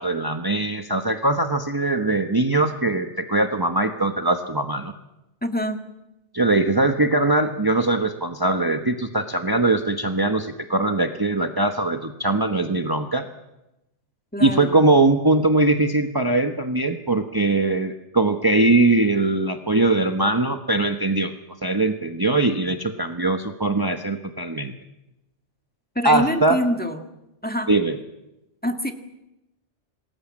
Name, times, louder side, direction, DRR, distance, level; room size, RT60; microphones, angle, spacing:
voice 1, 0.0-4.9 6.3-13.3 14.4-21.3 21.6-24.7 26.0-26.6 27.7-28.0, right 2 dB, 20° right, 6 dB, 1.2 m, -21 dB
voice 2, 5.4-5.8 14.3-14.9 26.0-27.0 27.4-27.7 28.6-28.9, equal, 10° left, 6 dB, 1.8 m, -25 dB
27.0 x 20.0 x 7.5 m, 0.94 s
omnidirectional pair, 1.2 m